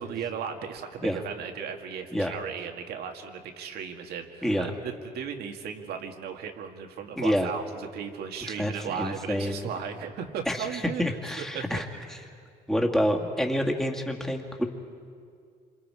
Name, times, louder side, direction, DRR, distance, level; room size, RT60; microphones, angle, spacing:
voice 1, 0.0-11.8, right 7 dB, 70° right, 5 dB, 2.0 m, -36 dB
voice 2, 7.2-7.5 8.6-9.7 10.5-11.8 12.7-14.6, equal, 5° left, 1 dB, 2.2 m, -27 dB
27.5 x 27.0 x 4.9 m, 2.2 s
cardioid pair, 110°, 17 cm